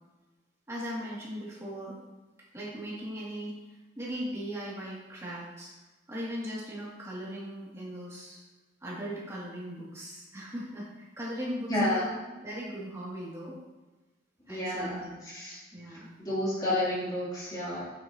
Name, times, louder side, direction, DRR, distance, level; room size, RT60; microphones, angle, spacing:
voice 1, 0.7-2.0 2.5-3.6 4.0-5.7 6.1-8.4 8.8-13.6 14.5-15.2 15.7-16.1, equal, 15° right, -7 dB, 2.4 m, -38 dB
voice 2, 11.7-12.1 14.5-15.6 16.2-17.8, left 1 dB, 20° left, -8 dB, 3.0 m, -30 dB
8.6 x 8.3 x 2.9 m, 1.1 s
head